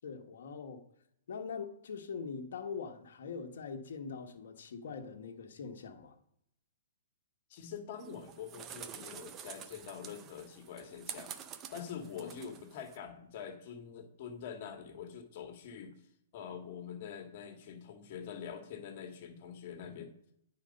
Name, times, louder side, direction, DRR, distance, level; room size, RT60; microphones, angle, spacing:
voice 1, 0.0-0.8 1.3-6.1 12.1-12.4, left 5 dB, 70° left, 4 dB, 1.4 m, -43 dB
voice 2, 7.5-11.3 11.7-16.0 16.3-20.1, left 7 dB, 50° left, 6 dB, 1.9 m, -45 dB
sound 1, 8.0-13.0, right 8 dB, 25° right, 0.6 m, -48 dB
9.8 x 5.1 x 5.4 m, 0.75 s
hypercardioid pair, 145°, 0 cm